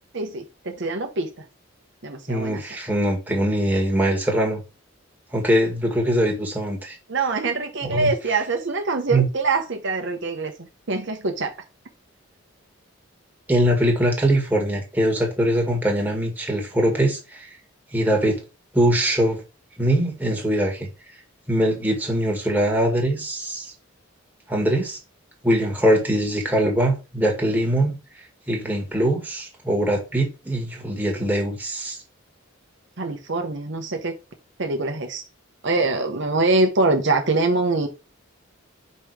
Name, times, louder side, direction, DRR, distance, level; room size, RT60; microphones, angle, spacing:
voice 1, 0.1-1.3 2.0-2.6 7.1-10.5 10.9-11.5 33.0-34.1 34.6-35.2 35.6-37.9, right 3 dB, 60° right, 1.0 m, -24 dB
voice 2, 2.3-4.6 5.3-7.0 7.8-8.1 9.1-9.3 13.5-17.5 17.9-18.4 18.7-19.4 19.8-20.9 21.5-23.7 24.5-25.0 25.4-27.9 28.5-32.0, right 1 dB, 10° right, 1.7 m, -22 dB
5.5 x 4.2 x 4.8 m
head